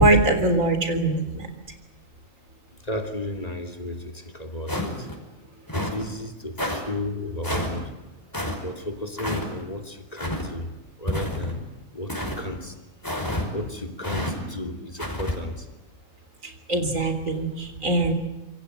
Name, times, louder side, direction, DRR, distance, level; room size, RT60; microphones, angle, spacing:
voice 1, 0.0-1.5 16.4-18.1, right 2 dB, 80° right, 7 dB, 4.0 m, -22 dB
voice 2, 2.8-5.1 5.7-7.9 8.5-10.7 11.0-11.6 11.9-12.8 13.5-15.7, left 1 dB, 30° left, 5 dB, 3.0 m, -33 dB
sound 1, 4.7-5.2 5.7-6.0 6.6-6.8 7.4-7.7 8.3-8.6 9.2-9.5 10.2-10.5 11.1-11.6 12.1-12.4 13.0-13.5 14.0-14.3 15.0-15.4, left 1 dB, 15° left, 5.3 m, -29 dB
27.0 x 24.5 x 8.0 m, 1.1 s
omnidirectional pair, 1.4 m